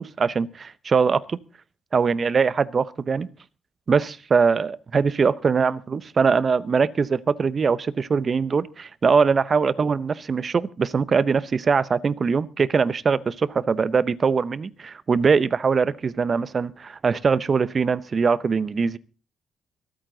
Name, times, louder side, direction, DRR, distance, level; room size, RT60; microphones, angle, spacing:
voice 1, 0.0-1.4 1.9-3.3 3.9-19.0, right 5 dB, 40° right, 18 dB, 0.7 m, -22 dB
25.5 x 9.0 x 3.9 m, 0.33 s
cardioid pair, 90°, 0 cm